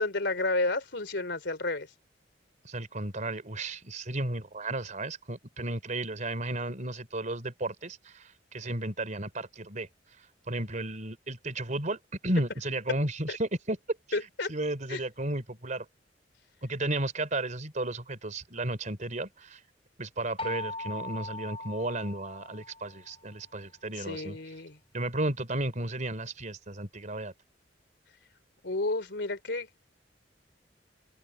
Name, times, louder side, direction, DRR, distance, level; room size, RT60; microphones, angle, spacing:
voice 1, 0.0-1.9 13.3-13.4 14.1-14.5 14.9-15.0 24.0-24.8 28.6-29.7, left 2 dB, 70° left, 3.6 m, -31 dB
voice 2, 2.6-9.9 10.5-13.8 14.5-15.9 16.6-19.6 20.0-24.4 24.9-27.3, right 2 dB, 45° right, 3.7 m, -33 dB
sound 1, 20.4-23.2, left 2 dB, 35° left, 4.1 m, -40 dB
open air
head